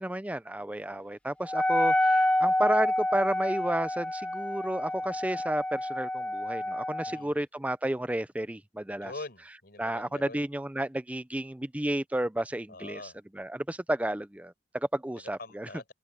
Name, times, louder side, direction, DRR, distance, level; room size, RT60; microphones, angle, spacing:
voice 1, 0.0-9.1 9.8-13.0 13.3-15.7, right 1 dB, 10° right, 0.5 m, -32 dB
Wind instrument woodwind instrument, 1.5-7.2, left 1 dB, 5° left, 1.6 m, -28 dB
voice 2, 7.1-7.5 9.0-10.5 12.7-13.2 15.2-15.9, left 2 dB, 60° left, 5.4 m, -44 dB
head